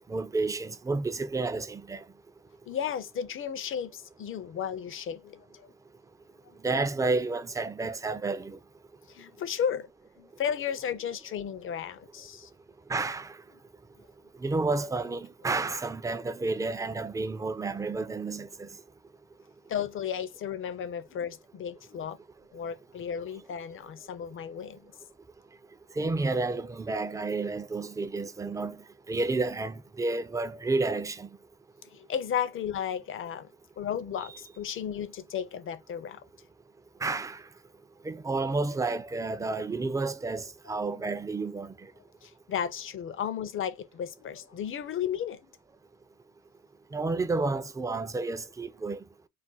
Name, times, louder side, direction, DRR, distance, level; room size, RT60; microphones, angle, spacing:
voice 1, 0.1-2.0 6.6-8.6 12.9-13.4 14.4-18.7 26.0-28.8 29.1-31.3 37.0-37.4 38.0-41.7 46.9-49.0, right 3 dB, 10° right, 0.3 m, -30 dB
voice 2, 2.7-5.7 6.4-6.6 9.1-9.9 10.2-12.5 19.7-22.2 22.5-24.8 31.9-33.5 33.8-36.2 42.2-45.4, left 8 dB, 45° left, 0.5 m, -34 dB
2.5 x 2.1 x 3.8 m
cardioid pair, 90°, 30 cm